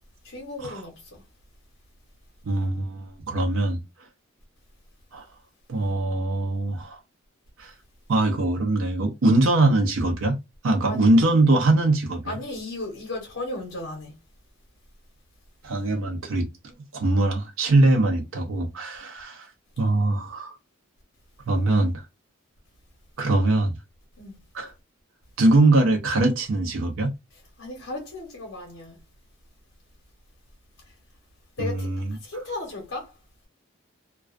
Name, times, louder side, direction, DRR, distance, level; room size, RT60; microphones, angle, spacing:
voice 1, 0.2-1.2 10.9-11.1 12.3-14.1 24.2-24.4 27.6-29.0 31.6-31.9 32.2-33.1, left 2 dB, 65° left, 0.8 m, -35 dB
voice 2, 2.5-3.8 5.1-5.2 5.7-7.0 7.6-7.7 8.1-10.4 10.6-12.4 15.6-19.5 19.8-20.6 21.5-22.0 23.2-23.8 24.5-24.7 25.4-27.1 31.6-32.2, right 2 dB, 85° right, 0.6 m, -22 dB
2.3 x 2.2 x 2.4 m
head